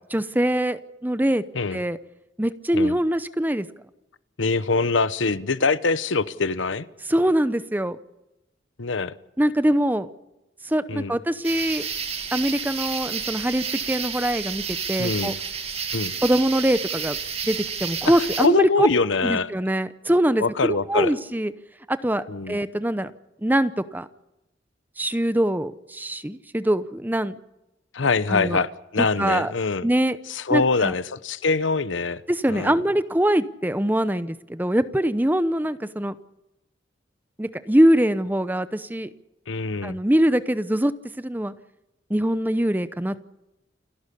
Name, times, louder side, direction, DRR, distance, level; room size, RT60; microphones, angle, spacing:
voice 1, 0.1-1.4 1.7-2.0 2.4-3.7 7.1-8.0 9.4-10.1 10.6-11.9 12.3-15.3 16.2-17.2 17.5-18.9 19.2-21.5 21.9-23.1 23.4-24.1 25.0-27.4 28.3-28.7 29.0-29.5 29.8-30.2 30.5-30.9 32.3-36.2 37.4-39.1 39.8-40.9 41.2-41.5 42.1-43.3, right 1 dB, 10° right, 0.8 m, -23 dB
voice 2, 4.4-6.9 8.8-9.1 10.9-11.2 15.0-15.4 15.9-16.1 18.4-19.5 20.4-21.1 22.3-22.6 27.9-29.9 30.3-32.2 32.5-32.8 39.5-40.0, left 4 dB, 85° left, 0.9 m, -24 dB
sound 1, 11.4-18.5, right 7 dB, 35° right, 2.1 m, -30 dB
29.0 x 12.0 x 8.5 m
head